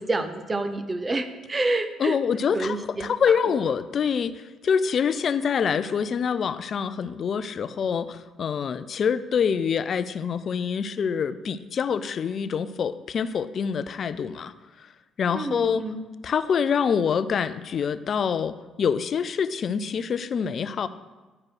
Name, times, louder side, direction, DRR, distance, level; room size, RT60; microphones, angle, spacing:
voice 1, 0.0-2.2 2.5-3.1 3.4-3.6 15.3-16.1, right 2 dB, 30° right, 9 dB, 0.8 m, -28 dB
voice 2, 2.0-14.9 15.2-15.8 16.2-20.9, left 7 dB, 55° left, 14 dB, 0.4 m, -26 dB
10.5 x 4.8 x 4.7 m, 1.2 s
supercardioid pair, 65°, 0 cm